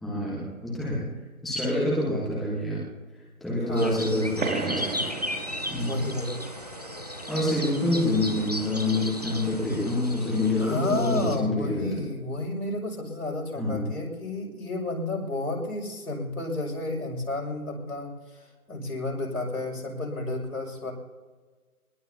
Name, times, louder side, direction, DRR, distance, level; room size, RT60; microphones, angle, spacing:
voice 1, 0.0-1.1 1.4-2.8 3.4-4.9 5.7-6.1 7.3-12.0 13.6-13.9, left 1 dB, ahead, -8 dB, 1.2 m, -27 dB
voice 2, 3.6-4.0 5.9-6.4 10.6-20.9, left 2 dB, 80° left, -2 dB, 6.3 m, -31 dB
sound 1, 3.8-11.4, left 1 dB, 30° right, 0.4 m, -36 dB
sound 2, 4.4-9.6, right 5 dB, 65° right, 1.9 m, -38 dB
21.0 x 20.5 x 2.9 m, 1.4 s
figure-of-eight pair, 155°, 43 cm